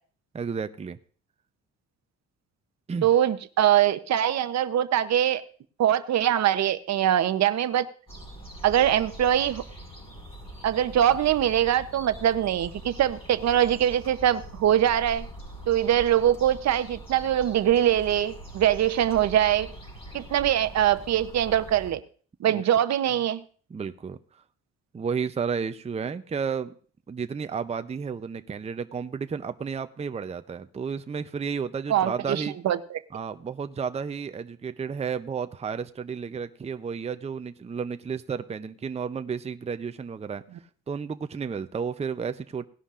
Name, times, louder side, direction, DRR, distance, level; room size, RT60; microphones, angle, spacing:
voice 1, 0.3-1.0 2.9-3.1 22.4-22.6 23.7-24.2 24.9-26.7 27.1-32.6 33.1-40.4 40.9-42.6, right 6 dB, 20° right, 10 dB, 0.5 m, -32 dB
voice 2, 3.0-5.4 5.8-7.9 8.6-9.6 10.6-15.3 15.7-19.7 20.1-22.0 22.4-23.4 31.9-33.0, right 11 dB, 60° right, 12 dB, 0.8 m, -23 dB
sound 1, 8.1-21.9, right 1 dB, 20° left, 5.4 m, -43 dB
18.0 x 11.0 x 2.5 m, 0.43 s
cardioid pair, 90°, 30 cm